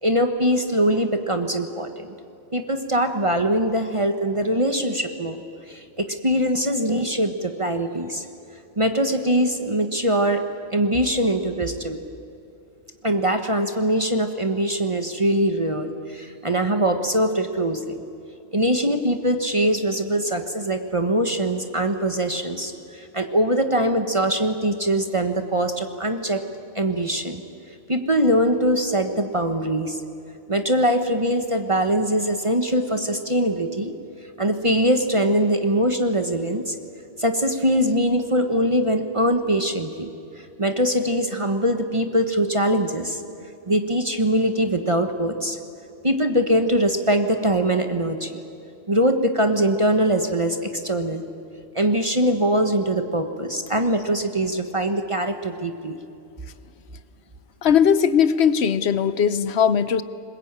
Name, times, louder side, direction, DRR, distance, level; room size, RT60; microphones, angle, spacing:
voice 1, 0.0-2.1 2.5-5.4 5.7-8.2 8.8-10.4 10.7-12.0 13.0-18.0 18.5-26.4 26.7-27.4 27.9-30.0 30.5-33.9 34.4-36.8 37.2-40.1 40.4-43.2 43.7-45.6 46.0-48.4 48.9-51.2 51.7-56.0, right 1 dB, 30° right, 7 dB, 1.1 m, -22 dB
voice 2, 57.6-60.0, left 7 dB, 65° left, 14 dB, 1.1 m, -19 dB
21.5 x 20.5 x 8.9 m, 2.7 s
omnidirectional pair, 1.2 m